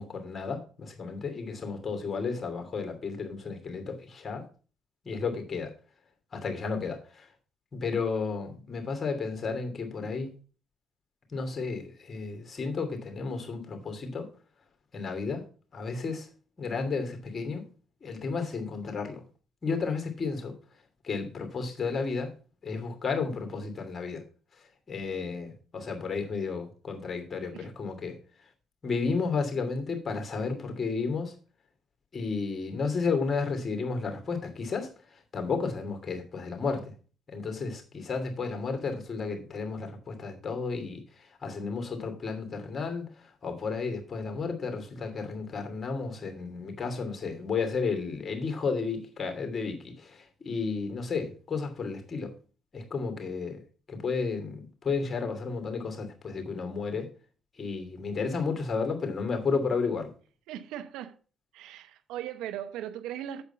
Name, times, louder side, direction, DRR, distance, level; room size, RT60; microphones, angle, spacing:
voice 1, 0.0-4.4 5.0-5.7 6.3-7.3 7.7-10.3 11.3-14.3 14.9-15.4 15.7-16.3 16.6-17.7 18.0-19.2 19.6-20.5 21.0-22.3 22.6-24.2 24.9-28.2 28.8-31.3 32.1-36.9 37.3-52.3 52.7-53.6 53.9-57.1 57.6-60.1, left 4 dB, 40° left, 2.8 m, -32 dB
voice 2, 60.5-61.2 61.5-63.4, right 11 dB, 75° right, 0.9 m, -38 dB
8.0 x 7.1 x 5.6 m
hypercardioid pair, 50°, 0 cm